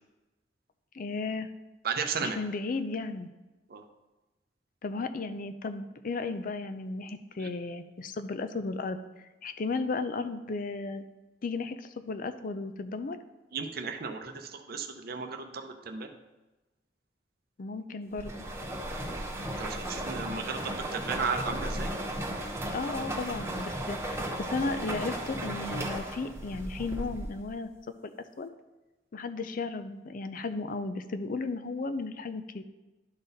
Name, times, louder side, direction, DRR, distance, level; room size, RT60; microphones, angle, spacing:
voice 1, 0.9-1.5 2.2-3.3 4.8-9.0 9.4-11.0 11.4-13.2 17.6-18.5 22.7-27.7 28.0-28.5 29.1-32.6, left 3 dB, 50° left, 10 dB, 0.5 m, -34 dB
voice 2, 1.8-2.4 3.7-3.8 7.4-7.5 13.5-16.1 19.0-19.2 19.6-21.9, right 5 dB, 55° right, 5 dB, 0.7 m, -34 dB
sound 1, 18.2-27.5, right 1 dB, 15° right, 0.8 m, -35 dB
11.5 x 4.0 x 4.0 m, 1.1 s
head